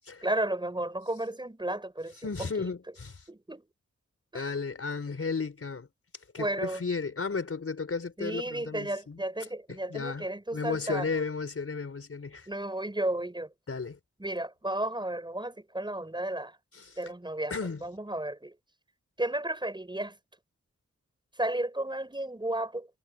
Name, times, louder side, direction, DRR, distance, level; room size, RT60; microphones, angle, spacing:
voice 1, 0.2-2.2 3.3-3.6 4.3-4.4 6.4-6.8 8.2-11.1 12.5-13.5 14.2-16.6 17.0-17.5 17.8-18.5 19.2-20.2 21.4-22.9, right 1 dB, 15° right, 5.7 m, -33 dB
voice 2, 2.2-3.2 4.3-5.9 6.3-9.2 9.7-10.3 10.5-12.5 13.7-14.0 16.7-17.0 17.5-17.9, left 4 dB, 50° left, 4.4 m, -34 dB
wide cardioid pair, 130°, 30 cm